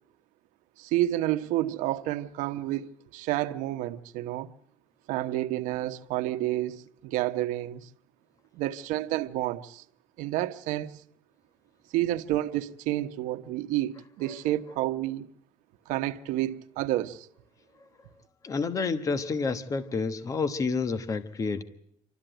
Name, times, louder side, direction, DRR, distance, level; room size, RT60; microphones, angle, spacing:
voice 1, 0.8-4.5 5.1-7.9 8.5-9.8 10.2-11.0 11.9-15.3 15.9-17.3, right 15 dB, 80° right, 1.1 m, -30 dB
voice 2, 18.4-21.6, left 4 dB, 25° left, 1.2 m, -29 dB
28.0 x 13.0 x 9.0 m
cardioid pair, 155°, 13 cm